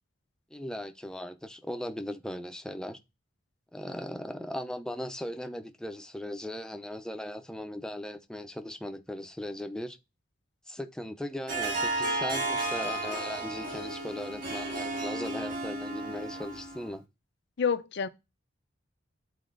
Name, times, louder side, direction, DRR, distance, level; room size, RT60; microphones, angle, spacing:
voice 1, 0.5-3.0 3.7-10.0 10.7-17.0, left 1 dB, 5° left, 0.6 m, -38 dB
Harp, 11.5-16.9, right 2 dB, 45° right, 2.3 m, -33 dB
voice 2, 17.6-18.1, left 6 dB, 60° left, 0.6 m, -28 dB
11.5 x 4.2 x 2.5 m
head